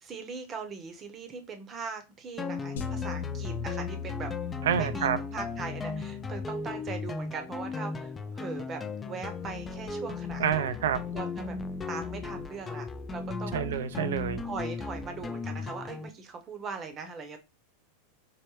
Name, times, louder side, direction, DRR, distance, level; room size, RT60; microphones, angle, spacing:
voice 1, 0.0-4.3 4.7-10.6 11.1-11.6 11.9-12.9 13.1-13.6 14.4-17.4, right 5 dB, 25° right, 0.7 m, -40 dB
sound 1, 2.4-16.1, left 4 dB, 15° left, 0.3 m, -36 dB
sound 2, 2.8-7.1, left 7 dB, 85° left, 0.5 m, -39 dB
voice 2, 4.6-5.2 10.4-11.0 13.5-14.4, right 8 dB, 90° right, 0.4 m, -28 dB
4.6 x 2.1 x 3.0 m
supercardioid pair, 145°, 0 cm